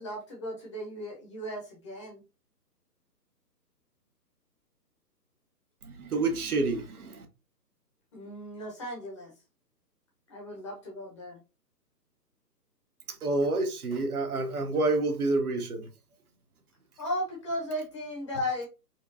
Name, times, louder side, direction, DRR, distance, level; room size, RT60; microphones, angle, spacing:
voice 1, 0.0-2.2 8.1-9.3 10.3-11.4 17.0-18.7, left 1 dB, 20° left, 0.7 m, -36 dB
voice 2, 5.8-7.3 13.1-15.9, right 2 dB, 60° right, 0.9 m, -28 dB
4.3 x 2.3 x 2.6 m
figure-of-eight pair, 145°, 49 cm